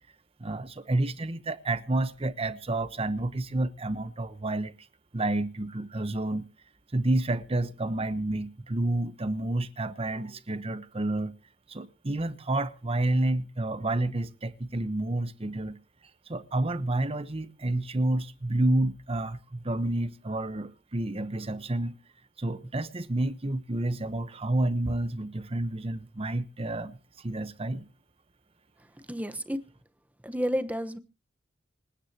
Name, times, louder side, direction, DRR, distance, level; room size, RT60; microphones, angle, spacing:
voice 1, 0.4-4.7 5.1-6.5 6.9-11.3 11.7-15.8 16.3-22.0 22.4-27.9, right 2 dB, 30° right, 1.0 m, -29 dB
voice 2, 29.1-29.6 30.2-31.0, equal, 10° right, 1.1 m, -30 dB
26.0 x 9.8 x 2.9 m
head